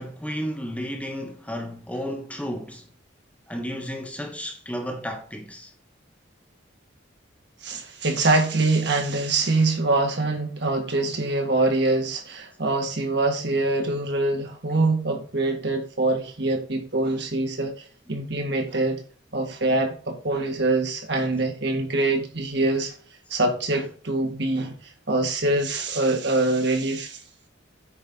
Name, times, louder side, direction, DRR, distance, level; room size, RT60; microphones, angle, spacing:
voice 1, 0.0-2.9 3.5-5.7 18.1-18.2, equal, 5° left, 1.1 m, -33 dB
voice 2, 7.6-19.0 19.3-23.0 23.3-27.2, right 2 dB, 60° right, 1.9 m, -24 dB
8.7 x 4.4 x 5.4 m
head